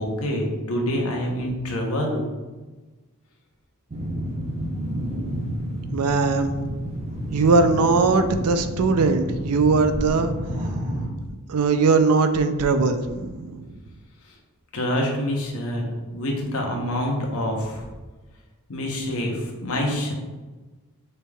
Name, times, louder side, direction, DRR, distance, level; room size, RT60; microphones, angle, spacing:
voice 1, 0.0-2.3 14.3-14.4 14.7-17.9 18.7-20.1, equal, 70° left, 0 dB, 1.0 m, -26 dB
sound 1, 3.9-11.1, equal, 30° right, 0.6 m, -30 dB
voice 2, 5.9-6.6 7.3-10.3 11.5-13.8, right 4 dB, 85° right, 9 dB, 0.4 m, -20 dB
6.6 x 3.3 x 2.3 m, 1.2 s
head